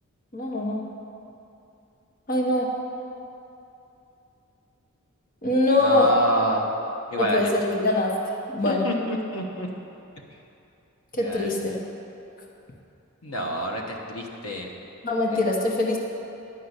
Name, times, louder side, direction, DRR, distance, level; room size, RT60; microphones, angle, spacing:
voice 1, 0.3-0.8 2.3-2.7 5.4-6.1 7.2-8.1 8.5-8.8 11.1-11.7 15.0-16.0, left 2 dB, 40° left, -1 dB, 1.1 m, -23 dB
voice 2, 5.8-6.6 7.1-7.5 8.6-9.7 11.1-11.7 13.2-14.7 15.3-15.4, right 1 dB, 80° left, 1 dB, 1.2 m, -28 dB
11.0 x 5.7 x 8.1 m, 2.8 s
head